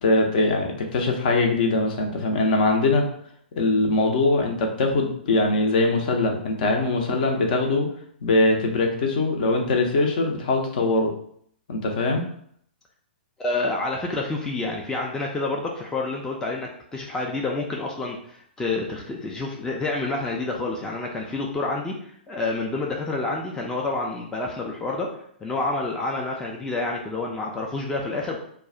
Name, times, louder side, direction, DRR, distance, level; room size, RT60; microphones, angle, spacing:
voice 1, 0.0-3.1 3.6-7.9 8.2-11.1 11.7-12.2, left 2 dB, 50° left, 2 dB, 0.6 m, -22 dB
voice 2, 13.4-25.1 25.4-28.4, left 2 dB, 10° left, -1 dB, 0.4 m, -28 dB
2.3 x 2.1 x 3.7 m, 0.64 s
figure-of-eight pair, 110°, 6 cm